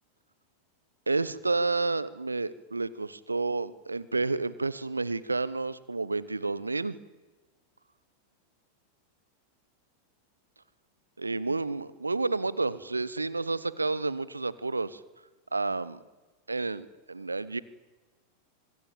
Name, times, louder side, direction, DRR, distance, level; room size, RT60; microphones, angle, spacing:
voice 1, 1.1-7.0 11.2-15.0 15.5-16.0 16.5-17.6, right 3 dB, 80° right, 19 dB, 1.1 m, -30 dB
25.0 x 20.0 x 9.0 m, 1.2 s
figure-of-eight pair, 90°, 0 cm